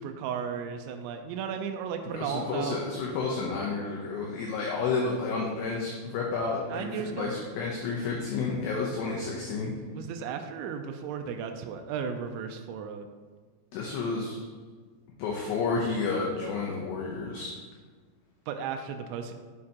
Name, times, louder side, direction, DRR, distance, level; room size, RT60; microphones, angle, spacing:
voice 1, 0.0-2.8 6.7-7.4 9.9-13.1 18.5-19.3, right 7 dB, 90° right, 6 dB, 2.6 m, -35 dB
voice 2, 2.1-9.7 13.7-14.4 15.2-17.5, left 4 dB, 80° left, -2 dB, 2.5 m, -31 dB
9.4 x 6.5 x 2.9 m, 1.5 s
omnidirectional pair, 5.8 m